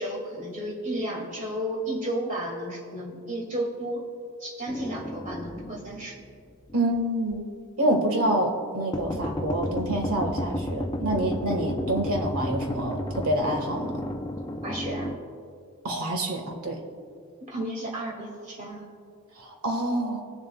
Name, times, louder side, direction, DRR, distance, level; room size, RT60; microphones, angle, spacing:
voice 1, 0.0-4.1 4.4-6.2 14.6-15.1 17.4-18.9, right 1 dB, 35° right, -2 dB, 2.2 m, -33 dB
sound 1, 4.7-7.0 7.3-7.4 8.9-15.2, left 1 dB, 20° left, 0.5 m, -33 dB
voice 2, 6.7-7.5 7.8-14.1 15.8-16.8 19.4-20.2, right 1 dB, 80° right, 3 dB, 1.5 m, -27 dB
20.5 x 7.2 x 2.3 m, 2.3 s
head